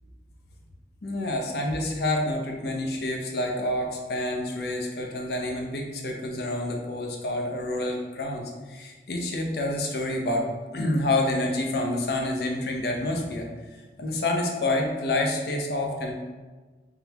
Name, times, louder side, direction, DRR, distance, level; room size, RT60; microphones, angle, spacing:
voice 1, 1.0-13.5 14.0-16.1, left 1 dB, 60° left, 1 dB, 0.6 m, -28 dB
3.7 x 3.3 x 2.9 m, 1.3 s
head